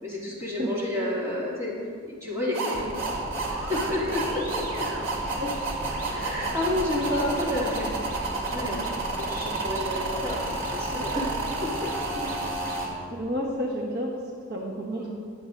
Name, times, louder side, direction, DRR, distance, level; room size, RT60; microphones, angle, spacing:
voice 1, 0.0-1.7 2.1-2.9 3.5-4.4 6.1-7.9 8.3-8.9 9.2-10.4 10.7-11.3 11.6-11.7 14.9-15.1, left 1 dB, 15° right, -7 dB, 2.7 m, -30 dB
sound 1, 2.5-12.9, right 2 dB, 85° right, 2.4 m, -30 dB
voice 2, 12.8-14.2 14.5-15.1, equal, 55° right, -2 dB, 1.2 m, -31 dB
21.0 x 7.9 x 2.6 m, 2.1 s
head